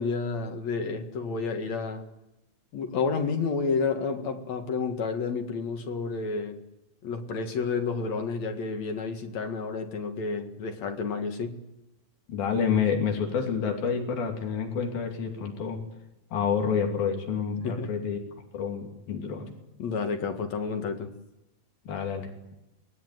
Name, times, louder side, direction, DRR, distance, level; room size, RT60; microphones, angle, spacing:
voice 1, 0.0-2.0 2.7-6.6 7.0-11.6 17.6-17.9 19.8-21.1, left 4 dB, 55° left, 2.9 m, -30 dB
voice 2, 12.3-15.8 16.3-18.2 18.5-19.5 21.9-22.3, left 6 dB, 90° left, 4.6 m, -28 dB
25.0 x 20.0 x 9.3 m
omnidirectional pair, 4.0 m